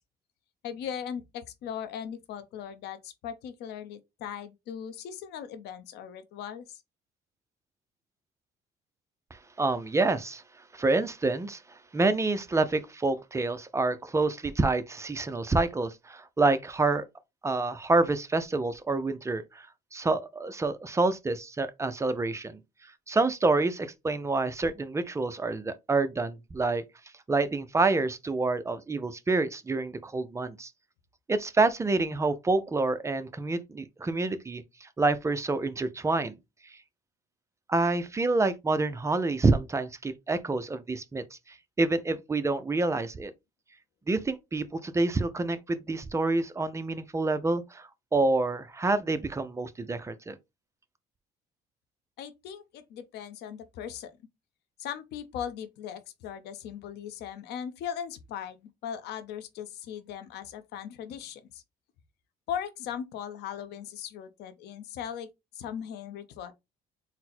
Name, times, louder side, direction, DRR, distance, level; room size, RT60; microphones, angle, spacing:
voice 1, 0.6-6.8 52.2-54.1 54.8-61.6 62.5-66.5, left 8 dB, 80° left, 0.7 m, -39 dB
voice 2, 9.3-10.4 10.7-11.6 11.9-17.1 17.4-19.7 19.9-22.6 23.1-26.8 27.3-30.7 31.3-36.4 37.7-41.2 41.8-43.3 44.1-50.3, right 3 dB, 15° right, 0.5 m, -27 dB
4.0 x 2.1 x 4.2 m
cardioid pair, 110°, 17 cm